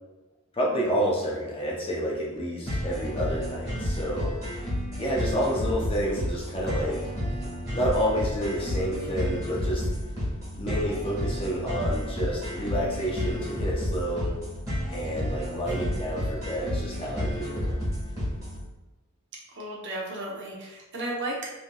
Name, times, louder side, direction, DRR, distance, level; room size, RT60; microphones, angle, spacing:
voice 1, 0.5-4.3 5.0-7.0 7.7-9.8 10.6-14.3 14.9-17.7, equal, 25° left, -4 dB, 0.5 m, -29 dB
sound 1, 2.7-18.6, equal, 15° right, 1.3 m, -31 dB
voice 2, 19.5-21.5, right 1 dB, 55° right, -3 dB, 0.8 m, -34 dB
3.4 x 2.7 x 2.2 m, 1.2 s
head